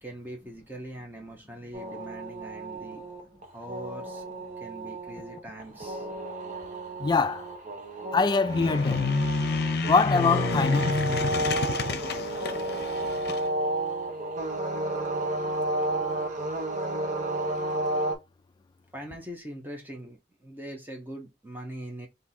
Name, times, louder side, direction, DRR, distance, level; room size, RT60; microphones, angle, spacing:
voice 1, 0.0-3.0 3.5-4.3 4.6-6.1 18.9-22.1, right 1 dB, 10° right, 0.9 m, -42 dB
sound 1, 1.7-18.1, right 2 dB, 45° right, 1.0 m, -32 dB
voice 2, 7.0-7.5 8.1-9.1 9.9-10.9, left 4 dB, 25° left, 0.3 m, -23 dB
sound 2, 8.4-13.4, left 4 dB, 60° left, 0.6 m, -28 dB
3.6 x 2.7 x 4.2 m
head